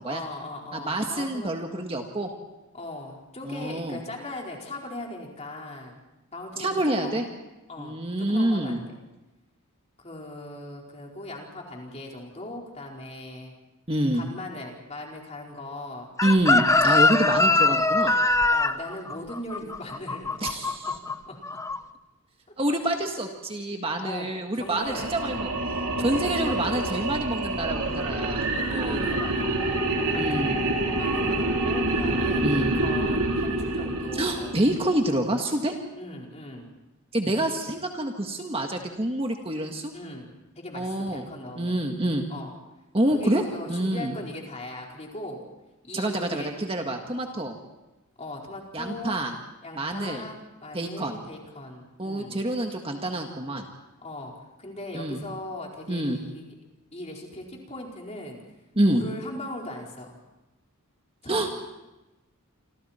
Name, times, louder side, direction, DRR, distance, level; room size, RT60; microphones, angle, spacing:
voice 1, 0.1-1.6 2.7-5.9 6.3-6.7 7.0-7.2 7.7-9.0 10.0-13.5 14.1-16.1 16.9-17.6 18.5-20.9 21.3-21.4 24.0-24.3 24.5-25.1 26.1-27.0 27.8-28.2 28.5-30.5 31.0-34.6 35.9-36.7 39.9-40.3 40.5-41.8 42.3-42.5 43.1-45.4 45.8-46.5 48.2-49.2 49.6-52.3 54.0-54.3 54.6-56.4 56.9-58.4 58.9-60.2 61.2-61.5, left 1 dB, 30° left, -1 dB, 4.6 m, -39 dB
voice 2, 0.7-2.3 3.4-4.0 6.6-7.2 7.8-8.8 13.9-14.2 16.2-18.2 20.4-20.8 22.6-25.5 26.0-28.9 30.1-30.6 32.4-32.7 34.1-35.7 37.1-39.9 40.7-41.3 41.6-42.3 42.9-43.4 43.7-44.1 45.9-47.6 48.7-49.3 49.7-50.3 50.7-51.2 52.0-53.7 54.9-55.2 55.9-56.2 58.7-59.0 61.3-61.5, right 1 dB, 25° right, 3 dB, 1.7 m, -27 dB
Chicken rooster, 16.2-21.1 21.4-21.8, left 3 dB, 15° left, 0.7 m, -22 dB
sound 1, 24.7-35.0, right 2 dB, 90° right, 3.9 m, -27 dB
28.0 x 26.5 x 4.4 m, 1.0 s
head